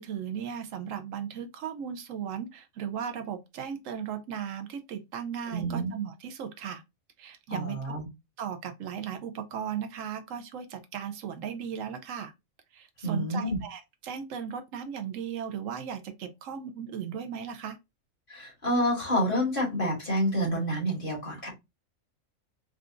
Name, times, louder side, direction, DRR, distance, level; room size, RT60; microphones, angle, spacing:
voice 1, 0.0-6.8 7.2-7.9 8.4-12.3 12.7-17.8, right 8 dB, 75° right, 0.9 m, -36 dB
voice 2, 5.5-5.9 7.5-8.1 13.0-13.6 18.3-21.5, equal, 40° left, 1.8 m, -28 dB
4.8 x 2.3 x 2.5 m
omnidirectional pair, 1.4 m